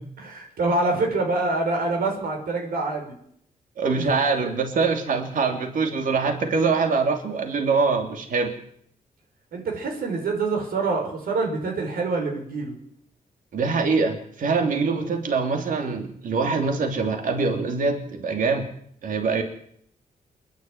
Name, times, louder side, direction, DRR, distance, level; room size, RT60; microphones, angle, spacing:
voice 1, 0.2-3.2 4.0-4.1 9.5-12.7, right 3 dB, 85° right, 2 dB, 5.6 m, -26 dB
voice 2, 3.8-8.5 13.5-18.7 19.0-19.4, right 4 dB, 65° right, 5 dB, 3.2 m, -24 dB
28.0 x 11.0 x 9.3 m, 0.69 s
wide cardioid pair, 160°, 15 cm